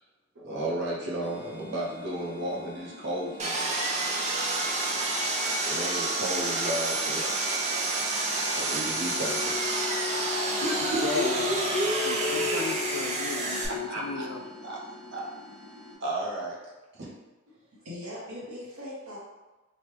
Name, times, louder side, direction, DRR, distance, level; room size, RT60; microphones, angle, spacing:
voice 1, 0.4-3.7 4.9-5.1 5.6-7.3 8.5-9.7 10.0-12.6 13.7-14.3 14.6-14.8 15.1-15.3 16.0-16.6 16.9-17.1, right 1 dB, 50° right, -4 dB, 0.7 m, -33 dB
sound 1, 1.2-15.9, left 5 dB, 35° left, 1.1 m, -40 dB
Sawing, 3.4-13.7, right 2 dB, 30° right, 0.3 m, -29 dB
voice 2, 10.9-11.5 12.0-14.4, left 5 dB, 70° left, 5 dB, 0.3 m, -34 dB
voice 3, 17.5-19.2, left 1 dB, 75° right, -6 dB, 1.1 m, -41 dB
3.0 x 2.2 x 3.1 m, 1.2 s
head